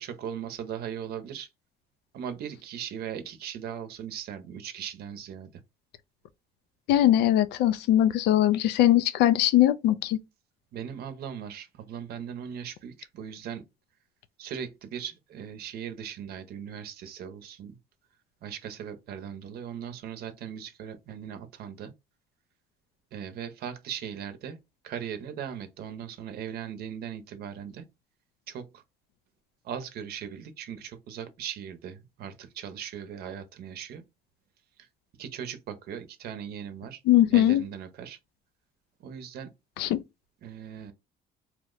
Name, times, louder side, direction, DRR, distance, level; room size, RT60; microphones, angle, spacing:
voice 1, 0.0-1.5 2.1-5.5 10.7-13.6 14.4-17.7 18.4-21.9 23.1-24.6 24.8-27.9 28.5-28.7 29.6-34.0 35.2-37.0 37.3-38.2 39.0-39.5 40.4-40.9, right 8 dB, 65° right, 0.7 m, -38 dB
voice 2, 6.9-10.2 37.1-37.6 39.8-40.0, left 13 dB, 80° left, 0.4 m, -21 dB
2.9 x 2.1 x 3.7 m
cardioid pair, 110°, 17 cm